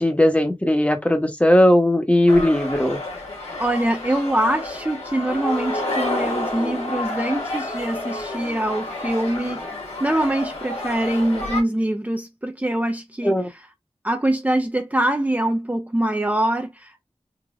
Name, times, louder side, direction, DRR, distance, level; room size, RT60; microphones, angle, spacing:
voice 1, 0.0-3.0 13.2-13.5, left 1 dB, 10° left, 1.0 m, -18 dB
sound 1, 2.3-11.6, left 1 dB, 85° left, 1.6 m, -29 dB
voice 2, 3.6-9.7 10.0-13.6 14.0-17.1, right 1 dB, 15° right, 0.6 m, -24 dB
3.9 x 2.8 x 2.4 m
wide cardioid pair, 45°, 11 cm